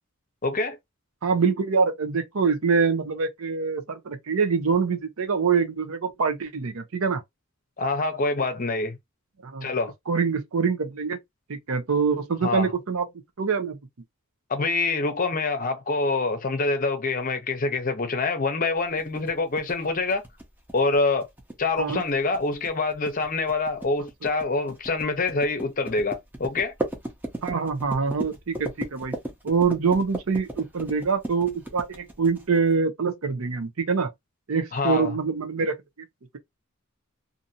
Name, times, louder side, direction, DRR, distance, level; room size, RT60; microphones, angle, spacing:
voice 1, 0.4-0.8 7.8-9.0 9.6-9.9 12.4-12.7 14.5-20.2 20.7-21.3 21.6-26.7 34.7-35.2, left 3 dB, 40° left, 0.6 m, -25 dB
voice 2, 1.2-7.2 9.4-9.7 10.1-11.2 11.5-13.1 13.4-13.8 21.8-22.0 27.4-29.1 29.4-34.1 34.5-36.1, right 5 dB, 75° right, 0.6 m, -25 dB
sound 1, 19.0-32.7, right 1 dB, 10° right, 0.6 m, -36 dB
2.6 x 2.6 x 2.6 m
head